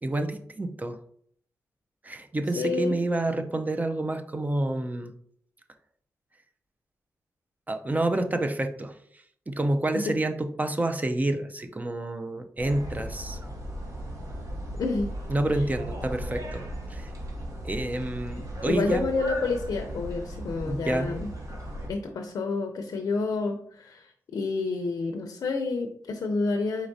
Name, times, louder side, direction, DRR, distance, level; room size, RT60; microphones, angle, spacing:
voice 1, 0.0-1.0 2.0-5.1 7.7-9.0 9.5-13.4 15.3-16.6 16.9-17.1 17.6-19.0 20.6-21.1, right 2 dB, 25° right, 7 dB, 0.5 m, -28 dB
voice 2, 2.6-3.0 10.0-10.1 14.8-15.1 15.5-15.7 18.6-21.3 21.9-26.9, left 3 dB, 75° left, 4 dB, 0.5 m, -29 dB
sound 1, 12.6-21.9, equal, 55° right, 1.1 m, -36 dB
4.6 x 4.0 x 2.6 m, 0.63 s
cardioid pair, 70°, 7 cm